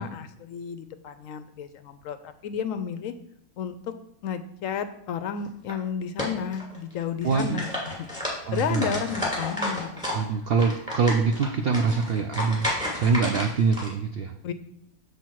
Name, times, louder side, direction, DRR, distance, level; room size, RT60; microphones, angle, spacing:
voice 1, 0.0-3.1 3.6-3.8 4.2-8.1 8.5-10.5 14.4-14.5, left 7 dB, 70° left, 11 dB, 0.9 m, -32 dB
sound 1, 5.4-5.7 6.2-6.9 7.2-10.2 10.5-13.9, left 1 dB, 5° left, 2.3 m, -31 dB
voice 2, 7.2-7.6 8.5-9.0 10.1-12.7 12.9-14.3, right 5 dB, 75° right, 6 dB, 0.5 m, -24 dB
6.8 x 5.9 x 4.6 m, 0.72 s
omnidirectional pair, 1.6 m